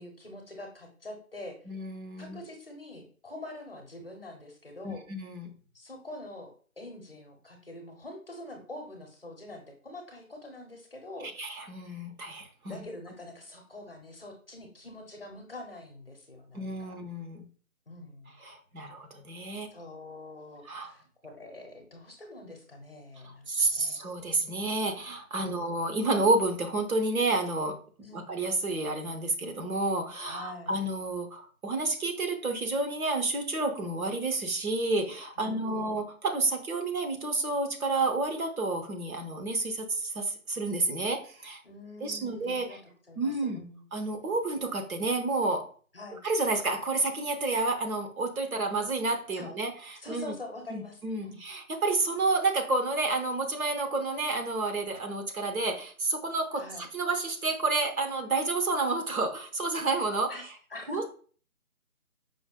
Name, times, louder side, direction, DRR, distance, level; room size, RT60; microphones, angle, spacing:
voice 1, 0.0-1.5 2.2-5.0 5.7-11.3 12.7-17.0 17.9-18.4 19.7-24.0 25.4-25.7 28.0-28.3 30.2-30.8 35.4-35.9 41.6-42.8 43.1-43.8 45.9-46.2 49.3-49.5 50.0-51.4 56.5-56.9 60.3-61.1, left 1 dB, 40° left, 3 dB, 0.7 m, -45 dB
voice 2, 1.7-2.4 4.8-5.5 11.4-12.8 16.5-17.4 18.4-19.7 20.6-20.9 23.2-27.8 28.1-41.6 42.0-42.8 43.2-43.6 43.9-45.7 46.2-50.3 50.7-60.4 60.9-61.1, right 3 dB, 75° right, 4 dB, 0.9 m, -30 dB
5.0 x 2.1 x 2.2 m, 0.43 s
figure-of-eight pair, 170°, 43 cm